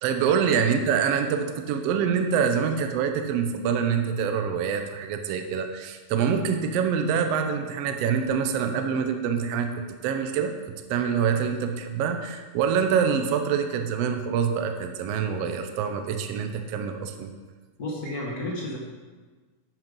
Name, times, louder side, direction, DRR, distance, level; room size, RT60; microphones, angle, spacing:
voice 1, 0.0-10.5 10.9-17.3 18.1-18.2, right 7 dB, 85° right, 6 dB, 1.4 m, -25 dB
voice 2, 17.8-18.8, left 1 dB, 45° left, -3 dB, 1.2 m, -31 dB
11.0 x 5.7 x 5.3 m, 1.4 s
omnidirectional pair, 3.9 m